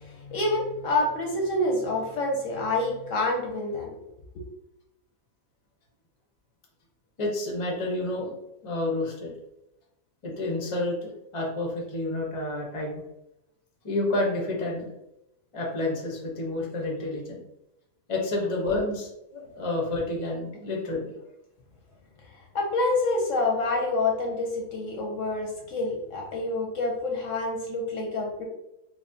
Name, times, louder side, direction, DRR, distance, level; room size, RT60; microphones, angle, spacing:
voice 1, 0.0-3.9 22.5-28.4, left 2 dB, 65° left, 0 dB, 0.8 m, -27 dB
voice 2, 7.2-8.3 8.6-9.3 10.2-13.0 13.8-14.9 15.5-17.4 18.1-21.1, left 2 dB, 45° left, -1 dB, 0.4 m, -29 dB
4.7 x 2.0 x 2.6 m, 0.89 s
omnidirectional pair, 1.7 m